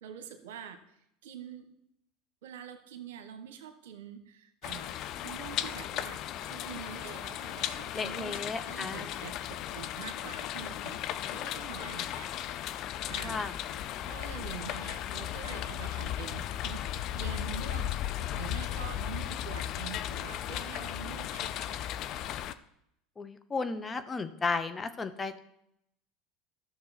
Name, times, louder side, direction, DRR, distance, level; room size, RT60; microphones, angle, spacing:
voice 1, 0.0-1.7 2.4-12.3 13.0-13.4 14.0-21.8, right 8 dB, 75° right, 8 dB, 1.1 m, -45 dB
sound 1, 4.6-22.5, left 11 dB, 55° left, 0.5 m, -36 dB
voice 2, 7.9-9.2 13.2-13.5 23.2-25.4, left 4 dB, 25° left, 9 dB, 0.9 m, -34 dB
13.5 x 6.2 x 4.2 m, 0.78 s
hypercardioid pair, 80°, 0 cm